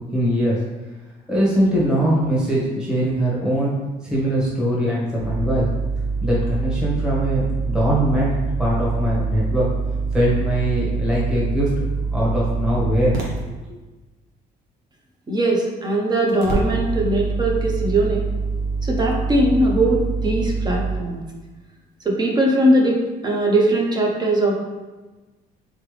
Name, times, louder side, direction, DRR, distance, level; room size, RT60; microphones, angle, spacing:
voice 1, 0.1-0.6 1.3-3.7 4.0-5.7 6.2-9.6 10.1-11.7 12.1-13.1, equal, 5° right, -7 dB, 1.3 m, -21 dB
sound 1, 5.2-13.4 16.3-21.0, right 4 dB, 70° right, 1.2 m, -25 dB
voice 2, 15.3-18.2 18.8-21.2 22.0-23.0 23.2-24.5, right 1 dB, 25° right, -1 dB, 0.9 m, -20 dB
4.0 x 3.4 x 3.3 m, 1.2 s
cardioid pair, 110°, 17 cm